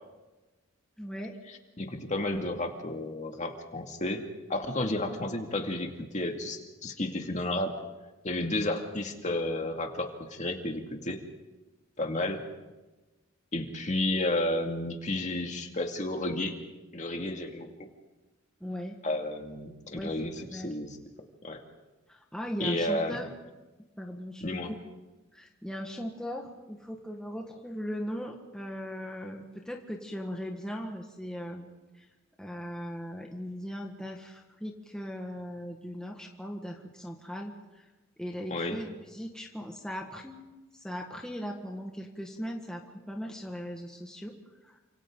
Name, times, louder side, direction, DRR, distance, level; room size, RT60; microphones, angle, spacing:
voice 1, 1.0-1.3 18.6-19.0 19.9-20.7 22.1-23.3 24.0-24.8 25.3-31.7 31.9-32.0 32.4-37.8 38.2-40.4 40.8-44.3 44.6-44.7, equal, 5° left, 0 dB, 1.6 m, -38 dB
voice 2, 1.8-4.2 4.5-7.7 8.2-11.2 12.0-12.4 13.5-16.5 16.9-17.9 19.0-21.0 21.4-21.6 22.6-23.2 24.4-24.7 38.5-38.8, left 1 dB, 35° left, 3 dB, 2.3 m, -32 dB
29.5 x 26.5 x 3.9 m, 1.1 s
head